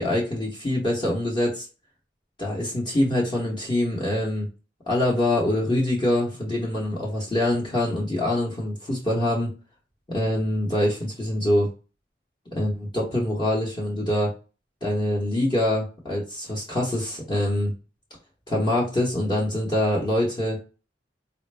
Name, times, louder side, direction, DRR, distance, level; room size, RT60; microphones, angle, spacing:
voice 1, 0.0-1.7 2.4-4.5 4.9-9.5 10.1-11.7 12.5-14.3 14.8-17.7 18.5-20.6, left 1 dB, 25° left, -4 dB, 0.9 m, -24 dB
4.1 x 2.1 x 3.2 m, 0.32 s
head